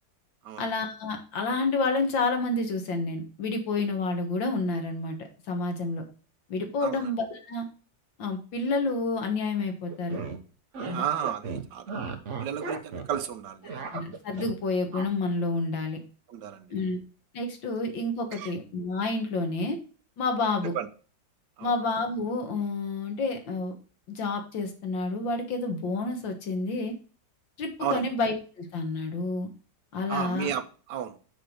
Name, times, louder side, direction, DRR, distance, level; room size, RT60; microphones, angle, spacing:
voice 1, 0.6-6.1 6.5-7.7 8.2-10.2 10.9-11.1 13.9-16.0 16.7-17.0 17.3-19.8 20.2-20.7 21.6-23.7 24.1-26.9 27.6-29.5 29.9-30.5, left 3 dB, 80° left, 2.3 m, -29 dB
voice 2, 6.8-7.1 10.8-11.9 12.4-13.9 16.3-16.7 18.3-18.5 20.7-20.9 21.6-21.7 27.8-28.1 30.1-31.2, right 9 dB, 70° right, 1.5 m, -33 dB
sound 1, 9.9-10.4 10.7-11.0 11.2-13.2 13.5-14.5 14.9-15.0, right 5 dB, 45° right, 1.2 m, -35 dB
6.6 x 5.7 x 6.2 m
omnidirectional pair, 2.0 m